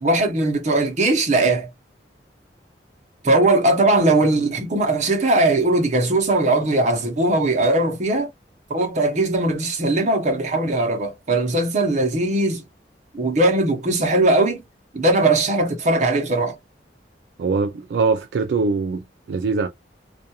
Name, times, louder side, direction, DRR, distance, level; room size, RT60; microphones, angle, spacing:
voice 1, 0.0-1.7 3.2-8.3 8.7-12.6 13.1-14.6 14.9-16.5, right 2 dB, 40° right, 0.7 m, -19 dB
voice 2, 17.4-19.7, right 4 dB, 65° right, 0.3 m, -22 dB
2.4 x 2.3 x 2.8 m
head